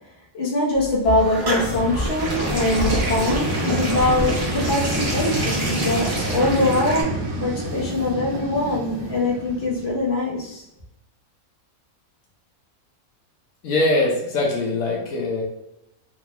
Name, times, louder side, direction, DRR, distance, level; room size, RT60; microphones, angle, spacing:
voice 1, 0.3-7.1 7.4-10.6, left 2 dB, 50° left, -4 dB, 1.2 m, -23 dB
sound 1, 0.7-7.0, right 1 dB, 20° right, 0.7 m, -27 dB
Vehicle, 1.3-10.3, right 1 dB, 90° right, 1.1 m, -28 dB
voice 2, 13.6-15.4, left 2 dB, 85° left, -2 dB, 1.2 m, -22 dB
3.8 x 2.3 x 2.9 m, 0.85 s
omnidirectional pair, 1.4 m